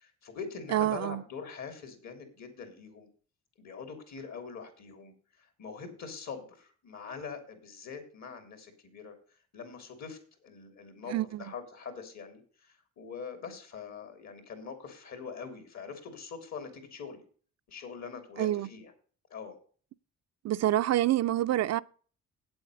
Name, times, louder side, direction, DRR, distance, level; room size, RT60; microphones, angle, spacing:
voice 1, 0.0-3.1 3.6-9.1 9.5-17.2 17.7-18.9 19.3-19.6, left 5 dB, 65° left, 3.2 m, -43 dB
voice 2, 0.7-1.2 11.1-11.4 18.4-18.7 20.4-21.8, right 13 dB, 60° right, 0.5 m, -27 dB
8.5 x 7.8 x 6.4 m
cardioid pair, 90°, 30 cm